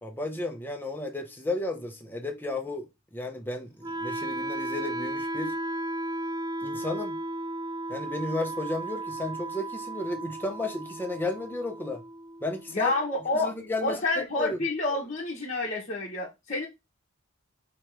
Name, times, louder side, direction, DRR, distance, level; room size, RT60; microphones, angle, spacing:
voice 1, 0.0-2.9 3.1-5.6 6.6-7.2 7.9-12.0 12.4-12.9 13.4-14.0 14.4-14.6, left 2 dB, 10° left, 0.9 m, -33 dB
Wind instrument woodwind instrument, 3.8-13.8, right 1 dB, 15° right, 0.4 m, -35 dB
voice 2, 12.7-13.5 13.8-16.7, left 2 dB, 35° left, 1.1 m, -28 dB
3.6 x 3.0 x 4.7 m
head